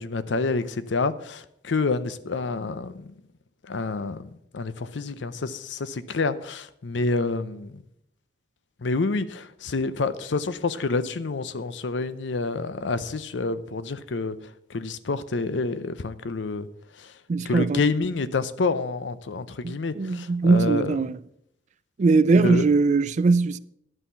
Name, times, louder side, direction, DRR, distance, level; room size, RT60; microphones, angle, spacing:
voice 1, 0.0-3.1 3.7-7.8 8.8-14.4 14.7-16.7 17.0-17.1 17.4-21.0 22.3-22.7, left 3 dB, 85° left, 0.6 m, -28 dB
voice 2, 17.3-17.8 19.6-21.2 22.0-23.6, right 3 dB, 40° right, 0.3 m, -21 dB
11.0 x 5.6 x 6.8 m
head